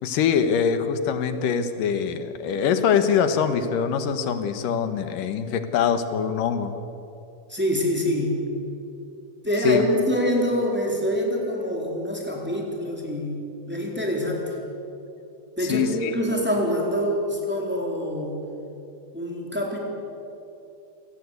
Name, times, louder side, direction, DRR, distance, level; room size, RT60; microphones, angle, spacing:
voice 1, 0.0-6.7 9.6-9.8 15.6-16.2, left 7 dB, 85° left, 9 dB, 3.0 m, -23 dB
voice 2, 7.5-8.4 9.4-13.4 13.7-14.6 15.6-18.4 19.1-19.8, equal, 5° right, -1 dB, 4.0 m, -25 dB
27.0 x 18.0 x 8.4 m, 2.8 s
omnidirectional pair, 3.8 m